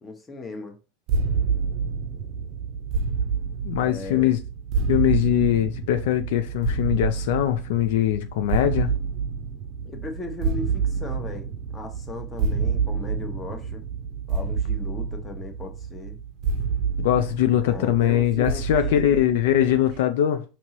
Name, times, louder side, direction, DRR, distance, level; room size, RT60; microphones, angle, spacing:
voice 1, 0.0-0.8 3.8-4.3 9.8-13.8 14.3-16.2 17.6-19.2, left 3 dB, 20° left, 0.9 m, -37 dB
sound 1, 1.1-20.0, right 5 dB, 50° right, 0.5 m, -28 dB
voice 2, 3.6-4.4 4.9-8.9 17.0-20.4, left 11 dB, 75° left, 0.4 m, -22 dB
4.5 x 2.8 x 2.9 m
supercardioid pair, 130°, 0 cm